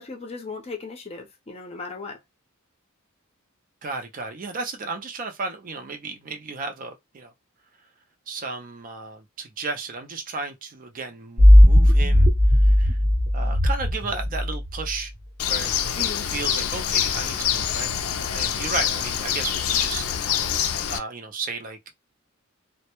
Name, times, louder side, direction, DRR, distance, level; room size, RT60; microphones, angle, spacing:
voice 1, 0.0-2.2 16.0-16.3, left 4 dB, 30° left, 0.5 m, -36 dB
voice 2, 3.8-7.3 8.3-12.3 12.6-13.0 13.3-15.1 15.5-20.4 20.9-21.8, right 4 dB, 40° right, 0.4 m, -34 dB
sound 1, 11.4-14.9, left 1 dB, 70° right, 0.9 m, -16 dB
Bird, 15.4-21.0, left 9 dB, 80° left, 0.4 m, -25 dB
2.1 x 2.0 x 2.9 m
head